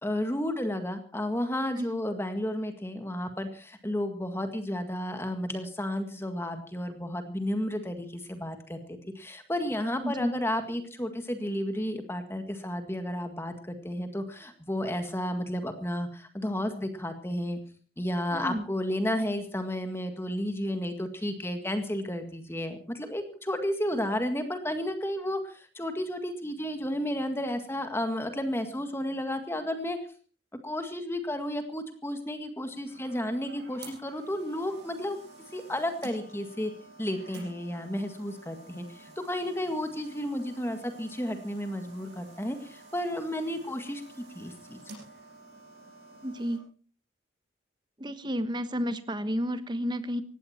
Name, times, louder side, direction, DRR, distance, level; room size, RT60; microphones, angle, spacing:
voice 1, 0.0-17.6 18.0-30.0 30.6-35.2 35.5-36.7 37.0-44.8, left 1 dB, 15° left, 7 dB, 1.9 m, -32 dB
voice 2, 18.3-18.7 46.2-46.7 48.0-50.2, equal, 25° right, 12 dB, 1.2 m, -31 dB
sound 1, 32.6-46.6, right 2 dB, 65° right, 7.7 m, -51 dB
18.5 x 16.0 x 4.4 m, 0.41 s
head